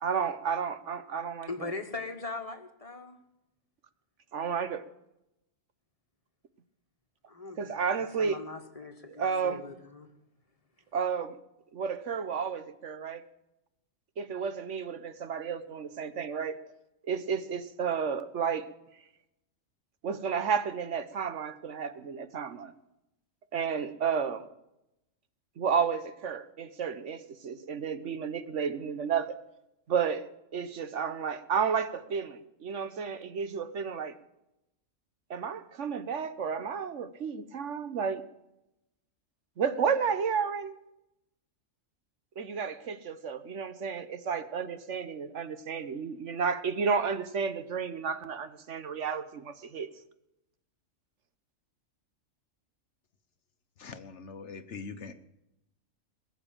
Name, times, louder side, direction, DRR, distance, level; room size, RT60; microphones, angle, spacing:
voice 1, 0.0-1.5 4.3-4.8 7.6-8.4 9.2-9.6 10.9-11.4 11.7-13.2 14.2-16.6 17.1-18.7 20.0-22.7 23.5-24.5 25.6-29.3 29.9-30.2 30.5-34.1 35.3-38.2 39.6-40.8 42.4-49.9, right 6 dB, 65° right, 11 dB, 1.2 m, -32 dB
voice 2, 1.5-3.2 7.3-10.1, left 3 dB, 25° left, 6 dB, 1.6 m, -40 dB
voice 3, 53.8-55.1, left 5 dB, 60° left, 10 dB, 1.3 m, -42 dB
21.0 x 7.1 x 8.8 m, 0.88 s
omnidirectional pair, 1.4 m